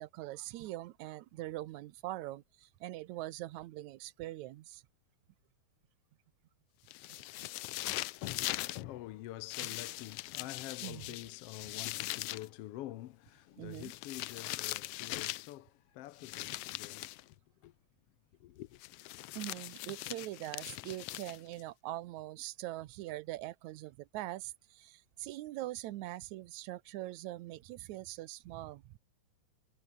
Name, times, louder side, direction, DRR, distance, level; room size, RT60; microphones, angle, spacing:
voice 1, 0.0-4.8 7.1-7.2 7.9-8.0 9.6-9.7 10.8-11.1 13.6-13.9 19.4-29.0, right 16 dB, 80° right, 2.2 m, -43 dB
sound 1, 6.9-8.8 9.5-12.5 13.7-15.5 16.2-17.2 18.8-21.6, left 18 dB, 90° left, 1.4 m, -41 dB
voice 2, 8.1-17.3 17.6-17.7 18.4-18.8, left 15 dB, 70° left, 1.5 m, -47 dB
omnidirectional pair, 3.3 m